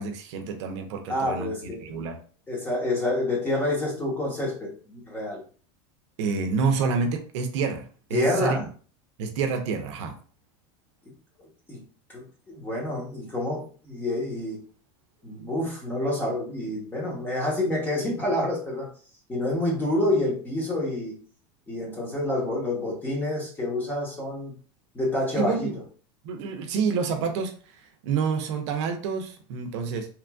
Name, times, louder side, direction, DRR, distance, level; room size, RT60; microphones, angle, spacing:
voice 1, 0.0-1.5 1.8-2.2 6.2-8.6 9.2-10.2 25.3-25.8 26.2-27.5 28.0-30.1, right 5 dB, 70° right, 6 dB, 0.5 m, -28 dB
voice 2, 1.1-1.9 2.5-5.4 8.1-8.6 11.7-11.8 12.1-14.6 15.2-18.9 19.3-21.1 21.7-24.5 24.9-25.7, left 1 dB, 10° left, -3 dB, 0.9 m, -28 dB
2.9 x 2.5 x 2.3 m, 0.41 s
supercardioid pair, 150°, 16 cm